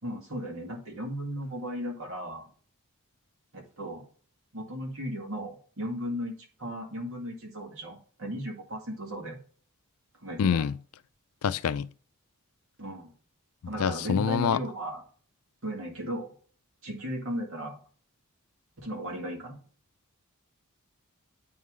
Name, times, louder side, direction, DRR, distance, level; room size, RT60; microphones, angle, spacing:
voice 1, 0.0-2.5 3.5-4.0 4.5-6.3 6.6-9.4 10.2-10.7 12.8-13.1 13.7-15.0 15.6-16.3 16.8-17.8 18.8-19.6, equal, 65° right, 2.1 m, -36 dB
voice 2, 10.4-10.7 11.4-11.9 13.8-14.6, left 7 dB, 80° left, 0.4 m, -26 dB
9.2 x 3.8 x 3.2 m
head